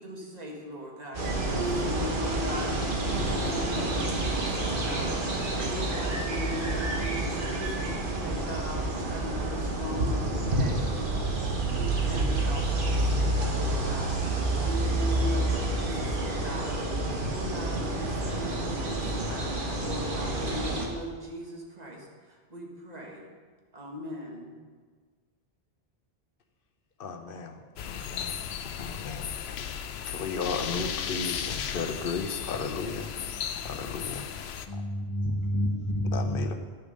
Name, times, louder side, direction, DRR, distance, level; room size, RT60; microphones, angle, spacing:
voice 1, 0.0-23.3 23.7-24.5, right 1 dB, 40° right, -1 dB, 1.7 m, -40 dB
sound 1, 1.1-20.9, right 2 dB, 55° right, 1.5 m, -29 dB
Guitar, 1.5-6.2, equal, 20° right, 1.4 m, -39 dB
voice 2, 27.0-28.4 28.8-29.3 29.6-33.1 33.6-34.6 36.0-36.5, left 5 dB, 65° left, 6 dB, 1.0 m, -35 dB
sound 2, 27.8-34.7, left 8 dB, 90° left, 0.8 m, -35 dB
voice 3, 34.7-36.5, equal, 30° left, -4 dB, 1.4 m, -29 dB
10.5 x 6.8 x 5.3 m, 1.5 s
omnidirectional pair, 1.0 m